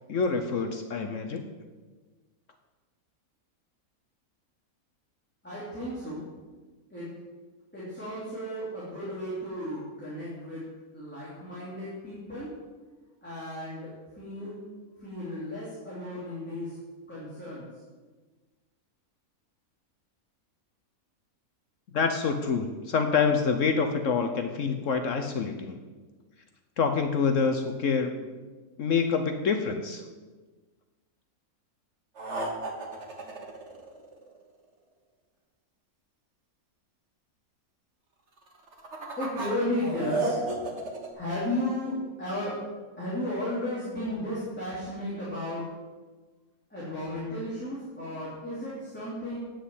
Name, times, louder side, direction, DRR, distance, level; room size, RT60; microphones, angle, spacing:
voice 1, 0.1-1.4 21.9-25.7 26.8-28.1 28.8-30.0, left 5 dB, 65° left, 5 dB, 1.1 m, -26 dB
voice 2, 5.4-6.2 6.9-7.0 7.7-10.6 10.9-12.5 13.2-13.9 14.1-14.6 15.0-16.8 17.1-17.7 39.2-40.4 41.1-42.6 43.0-45.6 46.7-49.4, left 1 dB, 5° left, -10 dB, 3.3 m, -34 dB
sound 1, 32.2-34.4 38.5-41.1, right 3 dB, 50° right, 1.8 m, -33 dB
9.4 x 6.4 x 8.2 m, 1.3 s
omnidirectional pair, 1.5 m